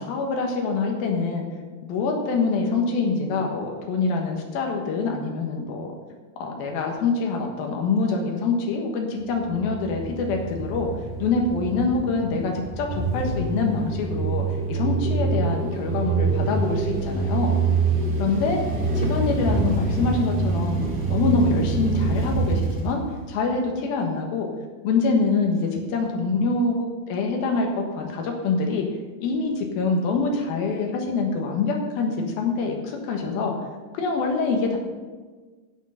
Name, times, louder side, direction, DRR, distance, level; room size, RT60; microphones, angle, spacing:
voice 1, 0.0-1.5 1.8-5.9 6.4-10.9 11.2-14.4 14.7-17.6 18.2-18.6 19.0-23.0 23.3-24.5 24.8-28.9 29.2-33.5 33.9-34.8, left 4 dB, 70° left, 1 dB, 3.2 m, -25 dB
sound 1, 9.3-23.7, right 4 dB, 25° right, 1.7 m, -26 dB
9.9 x 8.2 x 6.5 m, 1.4 s
omnidirectional pair, 4.5 m